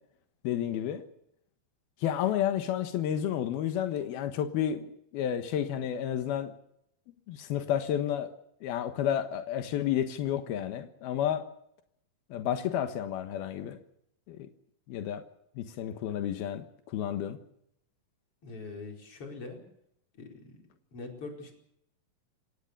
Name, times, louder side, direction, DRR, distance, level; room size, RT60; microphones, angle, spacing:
voice 1, 0.4-1.0 2.0-4.9 5.1-6.5 7.3-8.3 8.6-11.5 12.3-13.8 14.3-14.4 14.9-15.2 15.6-16.7 16.9-17.4, left 10 dB, 90° left, 7 dB, 3.3 m, -31 dB
voice 2, 18.4-19.6 20.1-20.6 20.9-21.5, left 3 dB, 35° left, 2 dB, 5.6 m, -42 dB
28.5 x 17.0 x 6.9 m, 0.74 s
omnidirectional pair, 4.2 m